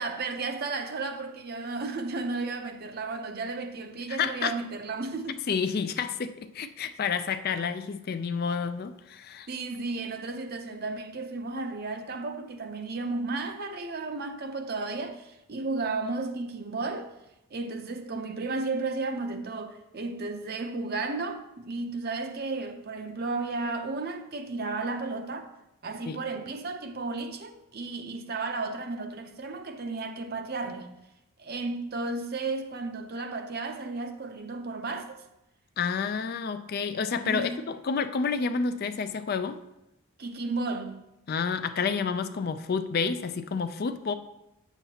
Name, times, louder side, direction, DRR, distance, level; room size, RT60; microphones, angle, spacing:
voice 1, 0.0-5.4 9.5-17.1 17.5-25.5 25.8-30.9 31.4-35.2 37.2-37.6 40.2-41.0, right 3 dB, 45° right, 0.6 m, -33 dB
voice 2, 4.1-4.5 5.5-9.5 26.1-26.2 35.8-39.6 41.3-44.1, left 5 dB, 45° left, 0.3 m, -29 dB
9.0 x 7.1 x 2.8 m
head